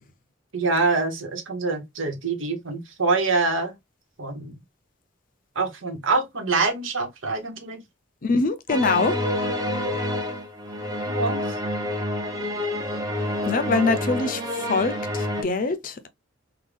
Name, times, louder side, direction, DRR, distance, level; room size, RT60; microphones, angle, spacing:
voice 1, 0.5-3.7 4.2-4.5 5.5-7.8 11.0-11.6, right 3 dB, 85° right, 1.1 m, -25 dB
voice 2, 8.2-9.2 13.5-14.4 14.7-16.1, left 3 dB, 45° left, 0.5 m, -23 dB
sound 1, 8.7-15.4, left 1 dB, 20° right, 0.7 m, -28 dB
3.6 x 2.2 x 3.3 m
head